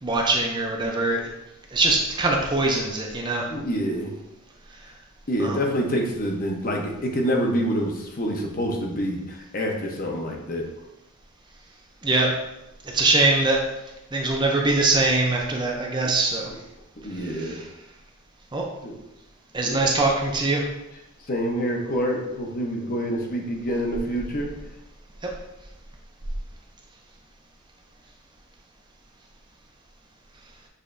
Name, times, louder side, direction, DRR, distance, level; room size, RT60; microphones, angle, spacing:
voice 1, 0.0-1.2 1.7-3.5 5.4-5.6 12.0-12.3 12.9-13.6 14.1-16.5 17.4-17.6 18.5-18.6 19.5-20.6, right 2 dB, 20° right, 0 dB, 0.5 m, -22 dB
voice 2, 3.5-4.1 5.3-10.7 17.0-17.6 18.8-19.0 19.7-19.8 21.3-24.5, equal, 40° left, 1 dB, 0.8 m, -27 dB
6.5 x 3.1 x 2.6 m, 0.90 s
head